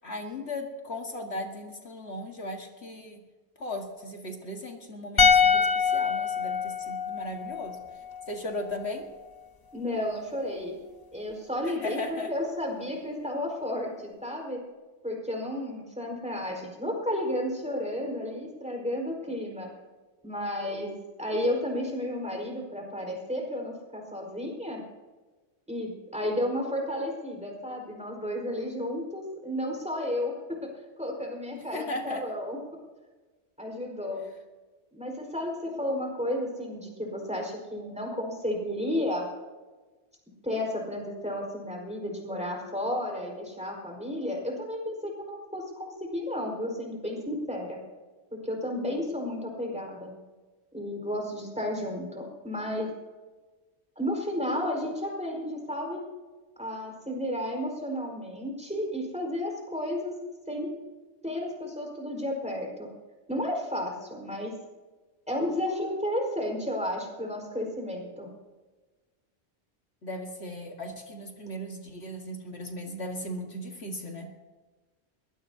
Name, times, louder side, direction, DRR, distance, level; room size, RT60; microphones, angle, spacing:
voice 1, 0.0-3.2 3.6-7.8 8.3-9.1 11.6-12.3 31.5-32.2 70.0-74.3, left 1 dB, 70° left, 2 dB, 2.1 m, -37 dB
sound 1, 5.2-8.4 8.6-8.8, left 6 dB, 25° left, 0.6 m, -25 dB
voice 2, 9.7-10.7 11.1-14.6 15.0-19.7 20.2-24.8 25.7-30.3 30.6-30.7 31.0-32.6 33.6-34.2 34.9-39.3 40.4-47.8 48.3-50.1 50.7-52.9 54.0-56.0 56.6-60.1 60.5-60.7 61.2-62.9 63.3-64.5 65.3-68.3, left 1 dB, 5° right, -1 dB, 4.8 m, -32 dB
22.5 x 20.0 x 2.8 m, 1.3 s
omnidirectional pair, 1.1 m